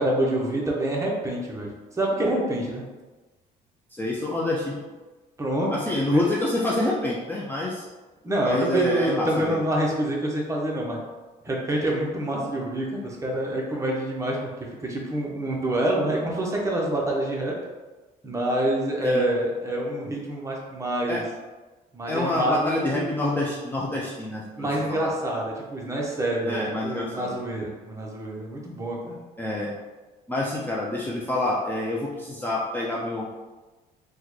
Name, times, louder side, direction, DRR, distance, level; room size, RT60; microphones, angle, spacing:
voice 1, 0.0-2.8 5.4-5.7 6.1-6.2 8.2-11.0 11.4-17.5 18.2-21.2 21.9-23.0 24.5-29.2, right 1 dB, 20° right, -2 dB, 0.7 m, -26 dB
voice 2, 3.9-4.8 5.7-7.8 8.4-9.6 19.0-19.3 21.1-21.2 22.1-25.1 26.4-27.4 29.4-29.7 30.3-33.3, left 2 dB, 10° left, -5 dB, 0.4 m, -27 dB
3.5 x 2.2 x 3.1 m, 1.2 s
cardioid pair, 110°, 17 cm